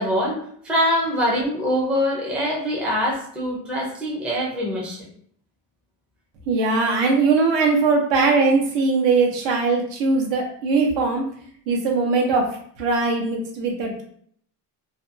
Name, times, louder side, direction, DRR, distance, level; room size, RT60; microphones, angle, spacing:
voice 1, 0.0-5.1, equal, 5° right, -4 dB, 0.4 m, -24 dB
voice 2, 6.5-11.2 11.7-12.5 12.8-14.0, right 3 dB, 80° right, 1 dB, 0.9 m, -20 dB
2.6 x 2.2 x 2.6 m, 0.62 s
cardioid pair, 160°, 43 cm